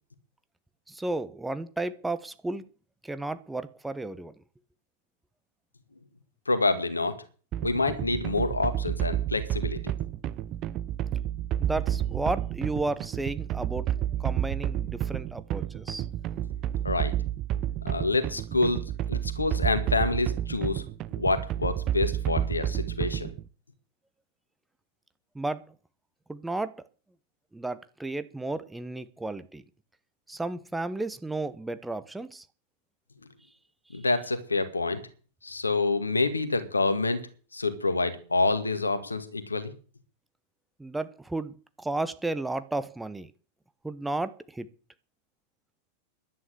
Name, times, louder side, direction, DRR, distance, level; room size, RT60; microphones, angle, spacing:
voice 1, 0.9-2.6 3.0-4.3 11.6-13.9 14.2-16.0 25.3-25.6 26.3-26.8 27.5-29.6 30.3-32.4 40.8-43.3 43.8-44.7, right 2 dB, 5° right, 1.0 m, -33 dB
voice 2, 6.5-7.2 7.6-9.8 16.8-17.1 17.8-18.8 19.1-20.8 21.2-23.3 33.9-35.0 35.4-37.2 37.5-39.7, left 3 dB, 80° left, 2.0 m, -27 dB
sound 1, 7.5-23.4, right 11 dB, 35° right, 0.8 m, -30 dB
11.5 x 9.6 x 8.0 m
figure-of-eight pair, 90°, 0 cm